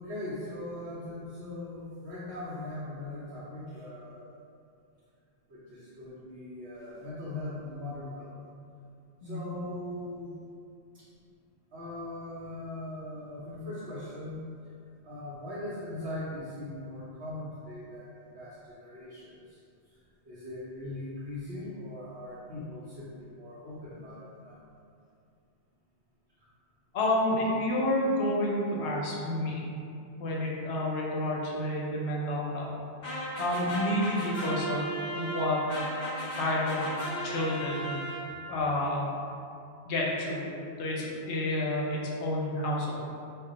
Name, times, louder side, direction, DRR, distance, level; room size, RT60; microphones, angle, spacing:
voice 1, 0.0-4.3 5.5-8.3 9.2-10.3 10.9-11.0 11.7-14.4 15.0-18.1 18.3-19.6 20.2-24.6, left 1 dB, 70° right, -11 dB, 0.9 m, -40 dB
voice 2, 26.9-29.7 30.2-32.7 33.4-35.7 36.4-36.9 37.2-37.9 38.5-39.0 39.9-40.4 40.8-42.9, left 1 dB, 80° left, -3 dB, 0.9 m, -29 dB
sound 1, 33.0-38.6, right 1 dB, 50° left, 0.7 m, -36 dB
2.3 x 2.2 x 3.8 m, 2.5 s
omnidirectional pair, 1.1 m